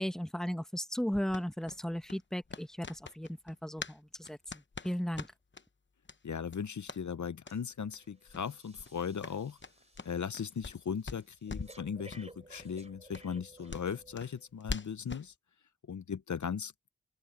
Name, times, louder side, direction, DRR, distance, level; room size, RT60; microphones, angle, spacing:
voice 1, 0.0-4.4 4.8-5.3, equal, ahead, 1.2 m, -35 dB
sound 1, 1.3-5.7 6.0-6.2 6.5-7.0 7.4-7.6 7.9-8.0 8.3-8.5 8.7-10.8 11.0-11.8 12.1-12.2 12.6-12.7 13.1-15.3, left 4 dB, 40° left, 0.9 m, -43 dB
voice 2, 6.2-9.6 10.0-15.3 15.9-16.7, left 7 dB, 70° left, 0.8 m, -38 dB
Breathing, 7.5-7.7 8.0-14.5 15.0-15.1, right 1 dB, 20° right, 3.2 m, -57 dB
open air
wide cardioid pair, 55°, 30 cm